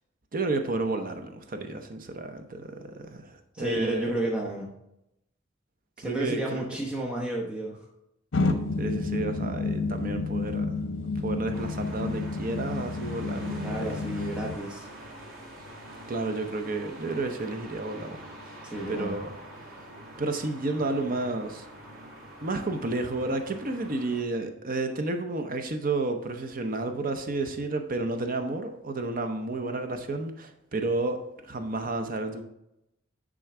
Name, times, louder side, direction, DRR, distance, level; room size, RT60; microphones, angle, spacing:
voice 1, 0.3-4.1 6.0-6.6 8.8-10.8 11.2-13.8 16.1-18.3 18.9-19.8 20.2-21.7 22.4-32.4, right 2 dB, 45° right, 0.8 m, -31 dB
voice 2, 3.5-4.7 6.0-7.8 13.6-14.9 18.6-19.2, right 1 dB, 5° right, 0.9 m, -32 dB
sound 1, 8.3-14.6, left 3 dB, 80° left, 0.9 m, -30 dB
sound 2, 11.5-24.2, right 1 dB, 90° right, 2.2 m, -45 dB
10.0 x 3.8 x 5.9 m
head